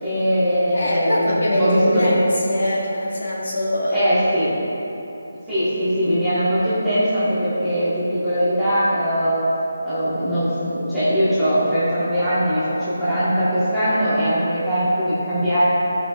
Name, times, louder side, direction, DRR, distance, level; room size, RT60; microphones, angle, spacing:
voice 1, 0.0-2.2 3.9-4.5 5.5-9.4 9.8-15.6, equal, ahead, -20 dB, 1.5 m, -21 dB
voice 2, 0.7-4.1, left 1 dB, 60° left, -5 dB, 1.5 m, -22 dB
14.5 x 5.2 x 2.5 m, 3.0 s
hypercardioid pair, 175°, 0 cm